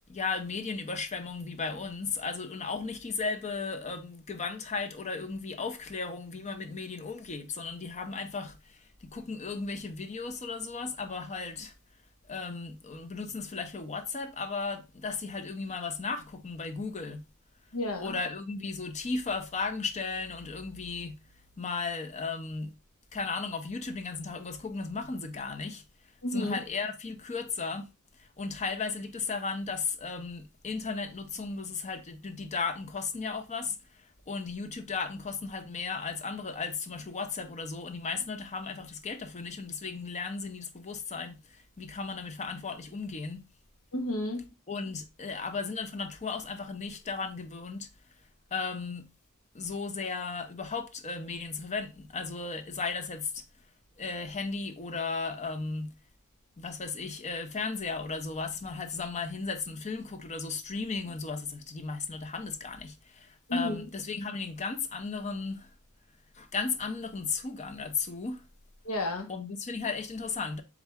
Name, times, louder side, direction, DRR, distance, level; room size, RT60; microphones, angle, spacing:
voice 1, 0.1-11.7 12.3-17.2 18.0-21.2 21.6-22.7 23.1-25.8 26.3-27.9 28.2-33.8 34.3-43.4 44.7-47.9 48.5-49.1 49.5-53.4 54.0-55.9 56.6-65.7 66.4-68.4 69.3-70.6, left 4 dB, 30° left, 0.6 m, -35 dB
voice 2, 17.7-18.2 26.2-26.6 43.9-44.5 63.5-63.9 68.8-69.3, left 1 dB, 70° left, 1.1 m, -31 dB
4.2 x 3.6 x 3.4 m
head